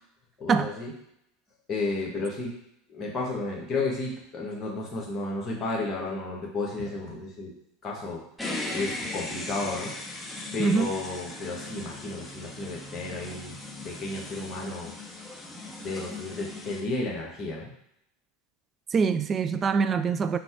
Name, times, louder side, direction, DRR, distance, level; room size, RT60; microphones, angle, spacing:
voice 1, 0.4-0.9 1.7-2.5 2.9-7.5 7.8-8.2 8.7-9.9 10.5-13.6 13.8-14.9 15.8-17.7, left 3 dB, 30° left, 1.3 m, -32 dB
sound 1, 8.4-16.8, left 2 dB, ahead, 1.0 m, -38 dB
voice 2, 10.6-10.9 18.9-20.4, right 5 dB, 30° right, 0.3 m, -24 dB
4.0 x 2.2 x 4.5 m
figure-of-eight pair, 80°, 0 cm